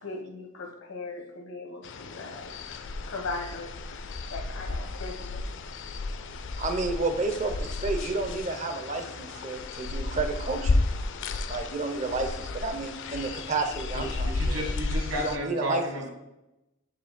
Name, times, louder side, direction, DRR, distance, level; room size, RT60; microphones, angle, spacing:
voice 1, 0.0-2.6 3.1-3.7 4.3-5.4, left 3 dB, 75° left, 2 dB, 1.2 m, -38 dB
sound 1, 1.8-15.4, left 3 dB, 55° left, 0.4 m, -33 dB
voice 2, 6.6-10.8 11.5-14.7 15.2-15.8, right 3 dB, 35° right, 6 dB, 0.7 m, -31 dB
voice 3, 13.9-16.1, equal, 85° right, 1 dB, 1.6 m, -33 dB
9.7 x 5.1 x 2.2 m, 0.91 s
head